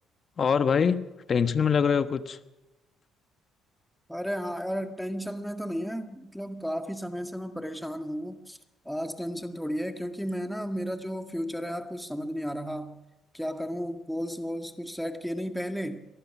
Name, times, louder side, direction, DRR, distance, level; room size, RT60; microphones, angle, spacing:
voice 1, 0.4-2.4, left 6 dB, 45° left, 11 dB, 1.3 m, -24 dB
voice 2, 4.1-8.6 8.9-13.0 13.3-16.0, equal, ahead, 7 dB, 1.8 m, -33 dB
24.0 x 19.0 x 6.1 m, 1.0 s
hypercardioid pair, 50°, 0 cm